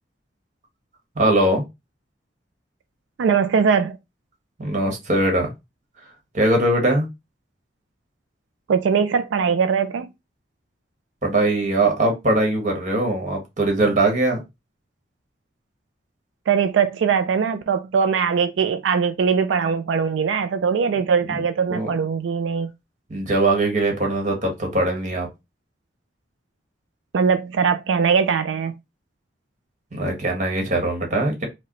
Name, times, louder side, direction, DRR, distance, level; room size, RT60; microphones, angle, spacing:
voice 1, 1.1-1.6 4.6-5.5 6.3-7.1 11.2-14.4 21.3-21.4 21.7-21.9 23.1-25.3 29.9-31.5, right 2 dB, 40° right, 1.3 m, -21 dB
voice 2, 3.2-4.0 8.7-10.1 16.5-22.7 27.1-28.8, right 6 dB, 90° right, 0.4 m, -21 dB
4.7 x 2.2 x 3.0 m
head